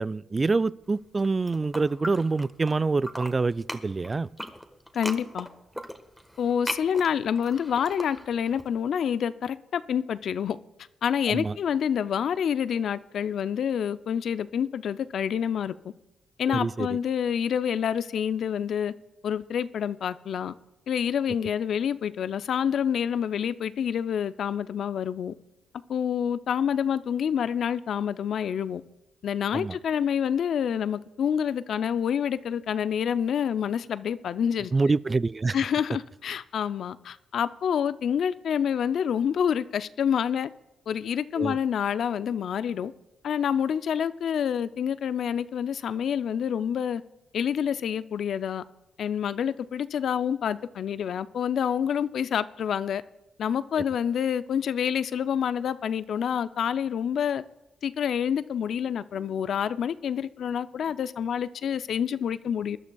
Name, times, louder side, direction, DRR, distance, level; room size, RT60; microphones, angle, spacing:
voice 1, 0.0-4.3 11.3-11.6 16.5-17.0 29.5-29.8 34.7-35.6 41.4-41.6, right 3 dB, 35° right, 0.3 m, -26 dB
sound 1, 1.1-2.7 3.0-8.6, equal, ahead, 1.3 m, -38 dB
voice 2, 4.9-5.5 6.4-10.6 11.0-15.7 16.4-18.9 19.2-20.5 20.9-25.3 25.9-28.8 29.2-34.7 35.5-40.5 40.9-42.9 43.2-47.0 47.3-48.6 49.0-53.0 53.4-57.4 57.8-62.8, left 8 dB, 70° left, 0.4 m, -27 dB
22.5 x 11.5 x 2.3 m
supercardioid pair, 50°, 0 cm